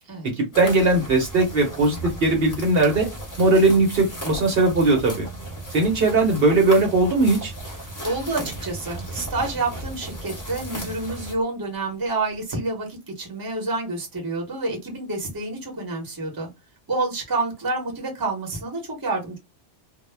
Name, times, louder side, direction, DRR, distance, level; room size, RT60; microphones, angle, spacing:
voice 1, 0.4-3.1 3.4-5.3 5.7-7.5, right 2 dB, 55° right, 0.9 m, -19 dB
sound 1, 0.5-11.3, right 1 dB, 20° left, 0.6 m, -35 dB
voice 2, 7.8-16.5 16.9-19.4, right 3 dB, 20° right, 0.7 m, -28 dB
2.1 x 2.0 x 3.2 m
omnidirectional pair, 1.2 m